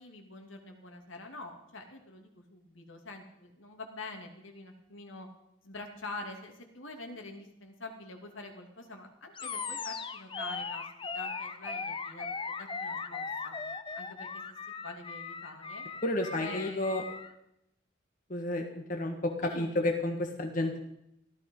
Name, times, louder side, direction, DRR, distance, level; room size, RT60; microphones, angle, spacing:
voice 1, 0.0-5.3 5.6-10.9 11.1-13.6 13.9-14.6 14.8-15.8 16.4-17.0 19.4-20.1, left 2 dB, 85° left, 3 dB, 2.6 m, -46 dB
Animal, 9.3-17.3, left 5 dB, 25° left, 0.7 m, -38 dB
voice 2, 16.0-17.0 18.3-20.8, left 1 dB, 45° left, 3 dB, 1.5 m, -31 dB
15.0 x 13.5 x 5.5 m, 0.80 s
head